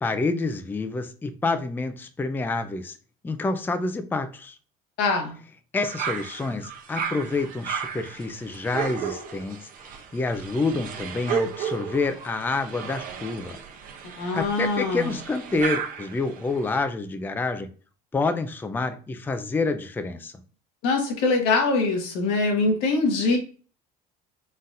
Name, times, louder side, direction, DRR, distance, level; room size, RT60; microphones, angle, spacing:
voice 1, 0.0-3.0 3.2-4.6 5.7-9.6 9.8-13.6 14.3-17.7 18.1-20.3, left 3 dB, 10° left, 0.4 m, -28 dB
voice 2, 5.0-5.3 14.2-15.1 20.8-23.4, left 3 dB, 80° left, 1.5 m, -23 dB
sound 1, 5.8-16.8, right 7 dB, 50° right, 0.9 m, -34 dB
4.1 x 3.9 x 2.5 m
supercardioid pair, 115°, 18 cm